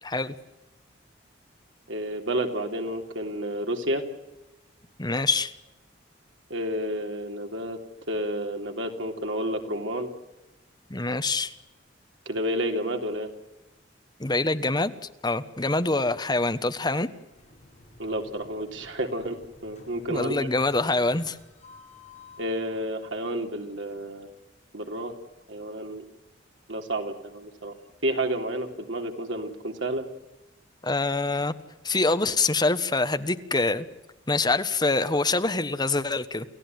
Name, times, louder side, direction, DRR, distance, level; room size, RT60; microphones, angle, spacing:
voice 1, 0.0-0.3 5.0-5.5 10.9-11.5 14.2-14.9 15.2-17.1 20.1-21.4 30.8-31.5 31.8-33.8 34.3-36.4, left 3 dB, 20° left, 11 dB, 1.2 m, -25 dB
voice 2, 1.9-4.0 6.5-7.8 8.1-10.1 12.2-13.3 18.0-19.4 19.6-20.5 22.4-24.3 24.7-25.1 25.5-26.0 26.7-27.7 28.0-30.0, right 1 dB, 75° right, 5 dB, 3.4 m, -30 dB
sound 1, 17.3-22.5, left 2 dB, 40° left, 7.4 m, -52 dB
29.0 x 16.0 x 9.4 m, 1.0 s
head